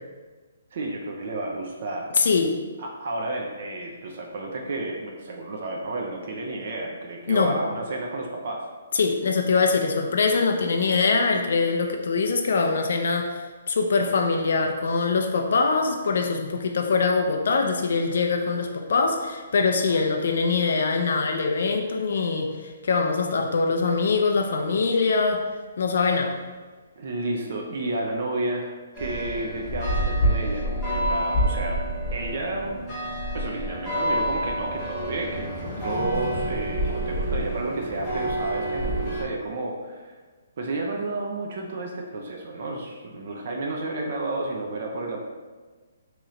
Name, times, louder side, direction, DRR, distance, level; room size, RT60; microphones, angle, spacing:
voice 1, 0.7-2.1 2.8-8.6 19.9-20.0 27.0-31.8 32.1-32.8 33.3-40.1 40.6-45.2, right 2 dB, 45° right, 0 dB, 0.5 m, -31 dB
voice 2, 2.1-2.6 7.3-7.5 8.9-25.4 25.8-26.3, left 4 dB, 60° left, 3 dB, 0.4 m, -23 dB
sound 1, 28.9-39.2, right 1 dB, 10° left, 0.9 m, -27 dB
3.1 x 2.9 x 3.6 m, 1.4 s
hypercardioid pair, 170°, 0 cm